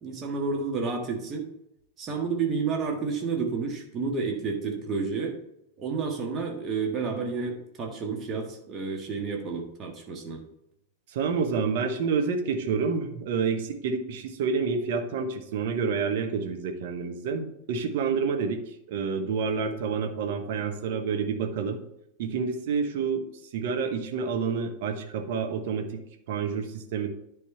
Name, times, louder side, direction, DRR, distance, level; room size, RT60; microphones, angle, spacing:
voice 1, 0.0-1.5 2.0-5.4 5.8-10.4, right 4 dB, 30° right, 2 dB, 1.5 m, -30 dB
voice 2, 11.1-21.8 22.2-23.2 23.5-25.9 26.3-27.1, right 5 dB, 50° right, 5 dB, 1.0 m, -28 dB
10.0 x 4.2 x 4.4 m, 0.79 s
figure-of-eight pair, 90°, 0 cm